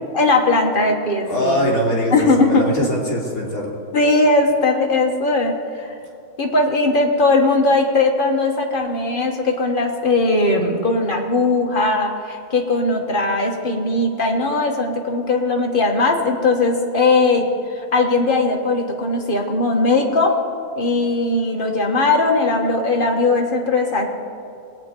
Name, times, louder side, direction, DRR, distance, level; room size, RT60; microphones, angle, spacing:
voice 1, 0.1-1.6 2.1-2.6 3.9-5.9 6.4-20.3 20.8-24.1, left 2 dB, 40° left, 1 dB, 1.4 m, -19 dB
voice 2, 1.2-3.8, equal, 70° left, -2 dB, 3.3 m, -22 dB
20.5 x 8.6 x 4.5 m, 2.5 s
omnidirectional pair, 1.5 m